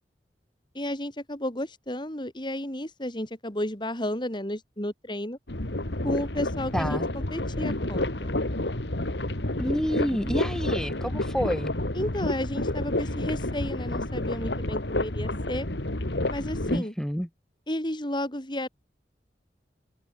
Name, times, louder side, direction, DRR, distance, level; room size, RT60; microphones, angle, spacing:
voice 1, 0.7-5.4 6.0-8.4 11.9-15.7 16.3-16.9 17.7-18.7, left 1 dB, 25° left, 4.7 m, -32 dB
sound 1, 5.5-16.8, left 1 dB, 80° left, 2.6 m, -29 dB
voice 2, 6.7-7.1 9.6-11.7 16.7-17.3, equal, 5° left, 1.9 m, -29 dB
open air
head